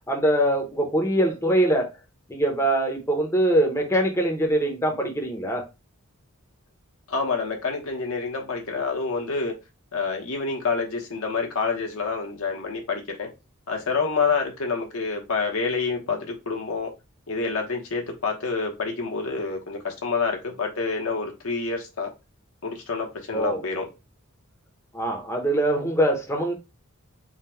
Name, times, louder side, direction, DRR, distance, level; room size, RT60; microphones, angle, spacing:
voice 1, 0.1-1.9 2.3-5.7 23.3-23.6 24.9-26.5, right 1 dB, 15° left, 0.8 m, -23 dB
voice 2, 7.1-9.6 9.9-13.3 13.7-16.9 17.3-22.1 22.6-23.8, left 4 dB, 70° left, 1.0 m, -27 dB
3.8 x 2.3 x 4.3 m
head